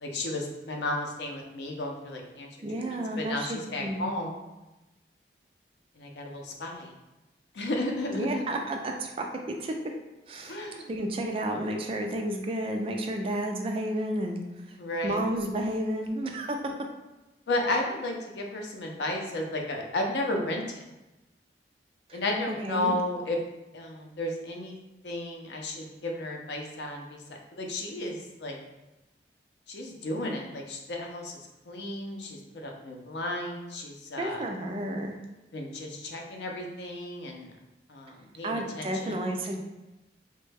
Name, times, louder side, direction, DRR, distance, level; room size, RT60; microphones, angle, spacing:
voice 1, 0.0-2.5 2.8-4.4 6.0-6.9 7.5-8.4 10.5-10.9 14.8-15.2 17.5-20.8 22.1-23.4 23.7-24.8 25.0-28.6 29.7-31.4 31.7-34.4 35.5-37.5 37.9-39.2, left 1 dB, 80° left, 1 dB, 0.5 m, -33 dB
voice 2, 2.6-4.0 8.1-9.7 10.3-14.8 15.0-16.7 22.1-22.2 22.5-23.0 34.2-35.2 38.4-39.6, right 1 dB, 30° right, 3 dB, 0.3 m, -31 dB
3.2 x 2.1 x 3.3 m, 1.0 s
head